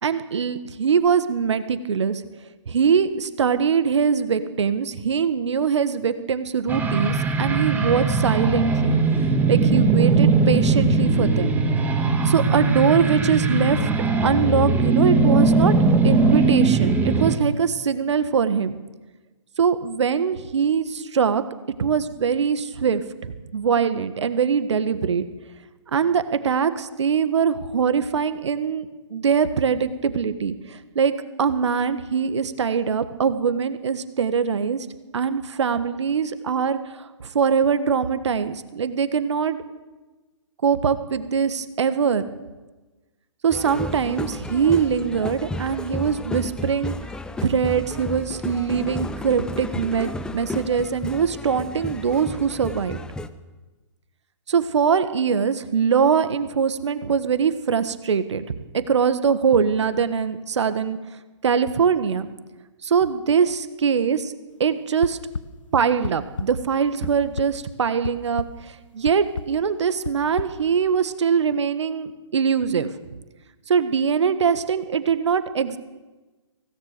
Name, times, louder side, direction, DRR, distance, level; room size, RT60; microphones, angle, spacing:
voice 1, 0.0-2.2 2.7-9.0 9.5-11.5 12.2-13.9 14.2-15.7 16.0-18.7 19.6-21.4 21.8-25.3 25.9-31.1 31.4-34.9 35.1-39.6 40.6-42.2 43.4-46.9 47.4-53.0 54.5-61.0 61.4-62.3 62.8-64.3 64.6-65.2 65.7-72.9 73.7-75.8, right 6 dB, 65° right, 11 dB, 1.6 m, -22 dB
sound 1, 6.7-17.4, right 3 dB, 10° right, 2.2 m, -20 dB
sound 2, 43.5-53.3, left 1 dB, 5° left, 0.8 m, -33 dB
sound 3, 65.0-65.4 66.0-66.5 66.8-67.5 68.0-68.5 69.1-69.4 70.0-70.5, left 4 dB, 80° left, 1.1 m, -29 dB
24.0 x 17.0 x 6.8 m, 1.2 s
figure-of-eight pair, 130°, 16 cm